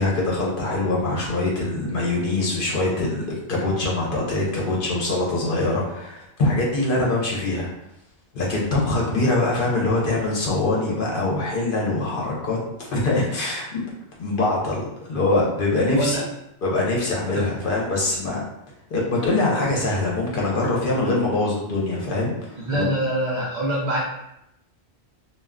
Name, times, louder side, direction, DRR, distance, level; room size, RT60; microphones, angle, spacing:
voice 1, 0.0-7.7 8.3-13.8 14.2-14.8 15.1-16.2 16.6-18.4 18.9-22.9, left 2 dB, 55° left, -3 dB, 0.8 m, -23 dB
voice 2, 15.9-16.2 17.3-17.4 22.6-24.0, right 1 dB, 50° right, -4 dB, 0.6 m, -25 dB
2.4 x 2.2 x 3.5 m, 0.83 s
omnidirectional pair, 1.1 m